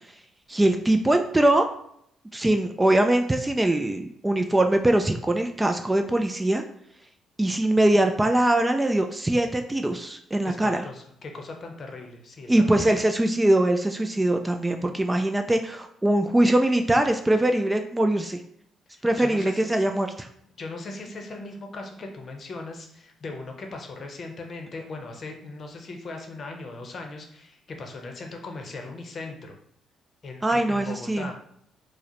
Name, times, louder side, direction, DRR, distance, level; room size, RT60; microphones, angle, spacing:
voice 1, 0.5-1.7 2.3-6.6 7.4-10.8 12.5-18.4 19.0-20.3 30.4-31.3, right 1 dB, 15° right, 5 dB, 0.3 m, -22 dB
voice 2, 10.4-13.0 18.9-20.0 20.6-29.5 30.2-31.3, left 3 dB, 45° left, 3 dB, 0.7 m, -39 dB
4.6 x 2.1 x 2.9 m, 0.71 s
cardioid pair, 90°, 0 cm